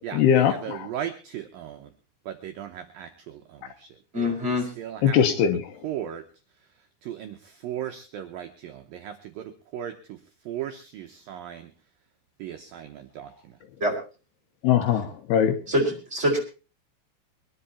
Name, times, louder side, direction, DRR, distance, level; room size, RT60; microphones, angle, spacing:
voice 1, 0.1-0.9 5.0-5.7 14.6-15.6, left 9 dB, 75° left, 7 dB, 2.8 m, -21 dB
voice 2, 0.6-1.8 2.3-3.1 4.2-4.3 4.8-5.2 5.8-6.2 7.1-7.3 7.6-9.1 9.7-9.9 10.5-11.6 12.4-13.3, right 10 dB, 80° right, 6 dB, 2.1 m, -35 dB
voice 3, 4.1-4.7 13.8-13.9 15.7-16.4, left 1 dB, 15° right, 0 dB, 4.6 m, -24 dB
23.0 x 10.5 x 4.2 m, 0.34 s
omnidirectional pair, 5.3 m